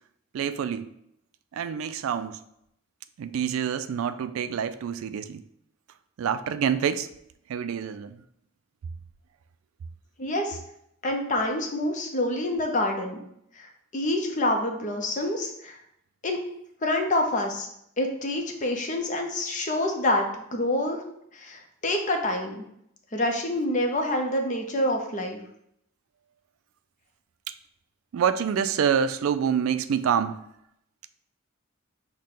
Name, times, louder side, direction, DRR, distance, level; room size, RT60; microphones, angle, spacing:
voice 1, 0.3-0.9 1.5-2.4 3.2-5.4 6.2-7.1 7.5-8.2 28.1-30.4, right 7 dB, 80° right, 12 dB, 0.3 m, -26 dB
voice 2, 10.2-10.6 11.0-13.2 13.6-15.8 16.2-16.4 16.8-17.7 18.0-21.0 21.3-22.7 23.1-25.4, left 1 dB, 35° left, 3 dB, 0.6 m, -27 dB
6.4 x 2.2 x 3.7 m, 0.75 s
head